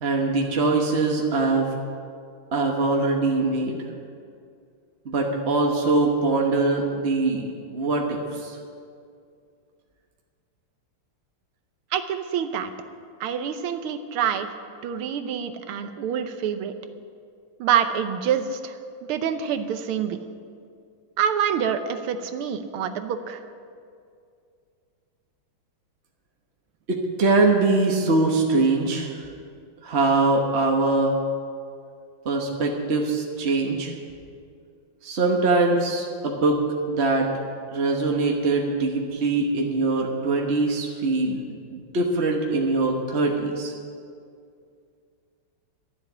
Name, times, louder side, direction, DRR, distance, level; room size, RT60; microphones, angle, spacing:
voice 1, 0.0-1.7 2.5-3.8 5.0-8.5 26.9-29.2 29.8-31.2 32.2-33.9 35.0-37.3 37.7-41.4 41.7-43.7, right 3 dB, 40° right, 0 dB, 1.2 m, -22 dB
voice 2, 11.9-12.7 13.2-14.5 14.8-16.7 17.6-18.8 19.1-20.2 21.2-23.4, right 8 dB, 90° right, 9 dB, 1.7 m, -26 dB
13.0 x 7.4 x 9.9 m, 2.3 s
omnidirectional pair, 2.3 m